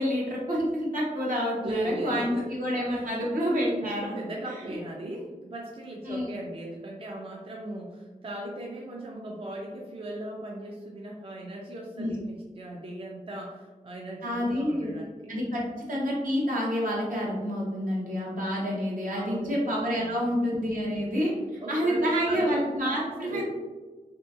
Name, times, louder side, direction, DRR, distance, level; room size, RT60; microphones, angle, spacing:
voice 1, 0.0-4.2 4.6-4.7 6.1-6.4 12.0-12.1 14.2-15.0 15.3-21.3 21.7-23.4, equal, 75° right, -5 dB, 0.9 m, -28 dB
voice 2, 1.6-2.5 2.9-3.1 3.6-15.3 19.1-19.5 19.9-20.1 21.6-23.4, right 1 dB, 40° right, -2 dB, 0.5 m, -38 dB
2.8 x 2.5 x 2.4 m, 1.3 s
cardioid pair, 45°, 14 cm